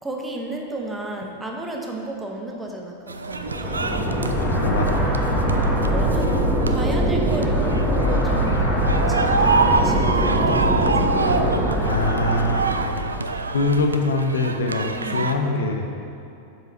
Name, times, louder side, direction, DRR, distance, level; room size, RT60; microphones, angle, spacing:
voice 1, 0.0-4.0 5.9-6.3 6.7-8.6 8.9-11.3 15.0-15.3, right 2 dB, 10° right, 0 dB, 0.9 m, -33 dB
sound 1, 3.1-15.3, right 3 dB, 75° right, 0.3 m, -26 dB
sound 2, 3.4-13.2, equal, 5° left, 1.3 m, -22 dB
voice 2, 4.6-5.1 11.9-12.6 13.5-15.9, left 2 dB, 65° left, 3 dB, 0.7 m, -23 dB
7.3 x 5.7 x 4.1 m, 2.7 s
figure-of-eight pair, 90°, 0 cm